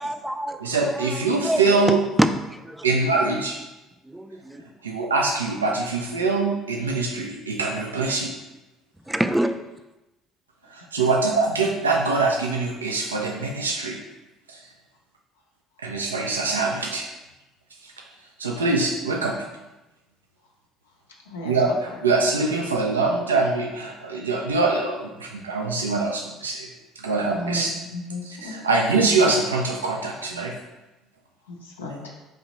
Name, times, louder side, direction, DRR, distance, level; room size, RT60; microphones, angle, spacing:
voice 1, 0.0-1.1 1.4-1.6 1.9-2.8 4.1-4.6 9.1-9.6, right 1 dB, 5° right, 8 dB, 0.3 m, -25 dB
voice 2, 0.6-2.0 2.8-3.6 4.8-8.3 10.7-14.0 14.5-14.6 15.8-17.1 17.8-17.9 18.4-19.3 21.4-26.7 27.0-27.7 28.3-30.5, right 3 dB, 90° right, 1 dB, 0.3 m, -23 dB
voice 3, 21.2-22.0 27.3-28.6 31.4-32.2, left 1 dB, 90° left, -2 dB, 0.5 m, -35 dB
4.6 x 2.8 x 3.0 m, 1.0 s
hypercardioid pair, 60°, 0 cm